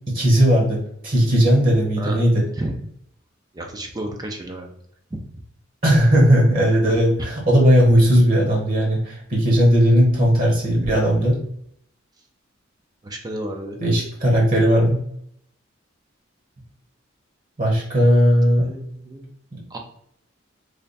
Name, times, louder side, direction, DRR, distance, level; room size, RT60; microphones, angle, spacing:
voice 1, 0.1-2.4 5.8-11.4 13.8-15.0 17.6-18.7, equal, 45° right, -2 dB, 1.1 m, -17 dB
voice 2, 3.5-4.7 5.1-5.2 13.0-13.8 18.5-19.3 19.7-19.8, right 1 dB, 20° right, 3 dB, 0.4 m, -31 dB
3.3 x 2.2 x 4.0 m, 0.69 s
head